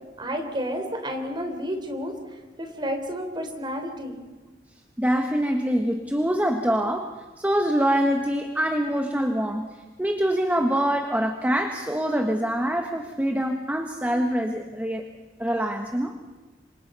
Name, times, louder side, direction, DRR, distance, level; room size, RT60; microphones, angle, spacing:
voice 1, 0.2-2.1 2.6-4.2, equal, 25° right, 4 dB, 3.5 m, -31 dB
voice 2, 5.0-9.7 10.0-15.0 15.4-16.2, equal, 10° right, 4 dB, 1.3 m, -25 dB
27.5 x 25.0 x 5.5 m, 1.2 s
head